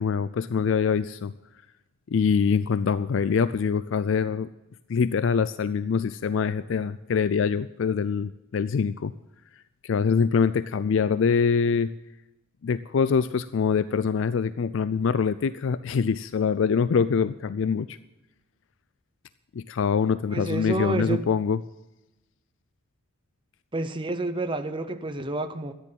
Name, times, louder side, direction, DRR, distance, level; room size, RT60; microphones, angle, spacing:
voice 1, 0.0-1.3 2.1-4.5 4.9-9.1 9.8-11.9 12.6-18.0 19.5-21.6, left 6 dB, 60° left, 0.4 m, -24 dB
voice 2, 20.3-21.3 23.7-25.7, right 2 dB, 25° right, 0.8 m, -29 dB
13.5 x 10.0 x 7.5 m
head